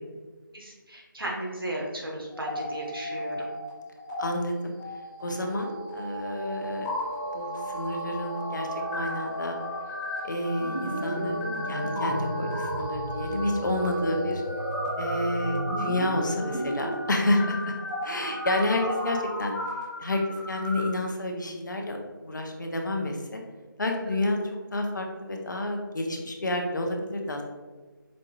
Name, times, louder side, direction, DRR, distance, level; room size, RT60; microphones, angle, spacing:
voice 1, 0.5-3.4, right 1 dB, 90° right, -2 dB, 1.1 m, -35 dB
sound 1, 2.3-3.7 4.0-4.2 4.8-20.8, equal, 10° left, 1.0 m, -33 dB
voice 2, 4.2-4.7 5.2-6.9 7.3-9.6 10.2-14.4 15.0-17.8 18.0-19.5 20.0-20.2 20.5-23.4 23.8-27.4, left 1 dB, 60° left, 3 dB, 0.7 m, -29 dB
sound 2, 5.4-19.4, right 1 dB, 10° right, 0.6 m, -40 dB
5.1 x 2.4 x 2.9 m, 1.3 s
figure-of-eight pair, 170°, 12 cm